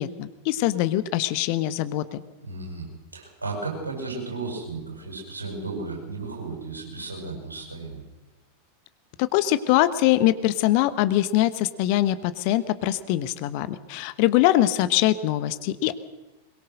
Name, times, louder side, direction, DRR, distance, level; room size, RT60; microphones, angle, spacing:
voice 1, 0.0-2.2 9.2-15.9, left 14 dB, 45° left, 13 dB, 1.2 m, -23 dB
voice 2, 2.4-2.9 3.1-8.0, right 3 dB, 80° right, 0 dB, 8.0 m, -34 dB
22.5 x 21.5 x 6.5 m, 1.1 s
figure-of-eight pair, 90°, 0 cm